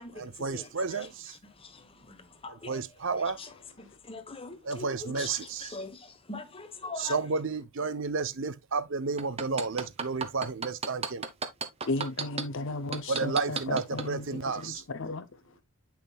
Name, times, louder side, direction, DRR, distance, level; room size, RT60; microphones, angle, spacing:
voice 1, 0.1-1.3 2.5-3.4 4.6-5.7 7.0-11.3 13.1-14.8, right 4 dB, 60° right, 0.7 m, -32 dB
voice 2, 2.4-2.8 3.4-3.5 3.8-6.0 6.3-7.2, left 3 dB, 25° left, 1.1 m, -41 dB
sound 1, 9.2-12.4 12.9-14.1 14.6-14.7, right 5 dB, 25° right, 0.8 m, -32 dB
voice 3, 11.9-15.3, left 2 dB, 60° left, 0.7 m, -35 dB
8.7 x 5.8 x 2.3 m
head